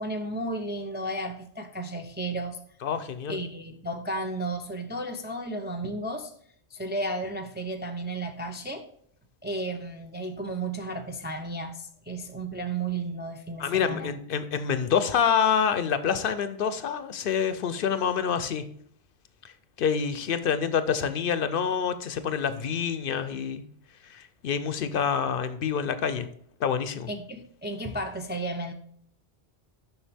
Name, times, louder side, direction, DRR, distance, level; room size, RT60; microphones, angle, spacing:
voice 1, 0.0-2.6 3.3-6.3 6.7-8.9 9.4-14.1 27.1-28.7, right 2 dB, 15° right, 4 dB, 0.3 m, -33 dB
voice 2, 2.8-3.4 13.6-18.6 19.4-19.5 19.8-23.6 24.0-26.3 26.6-27.1, left 7 dB, 65° left, 11 dB, 0.7 m, -27 dB
7.2 x 5.9 x 3.4 m, 0.63 s
omnidirectional pair, 1.1 m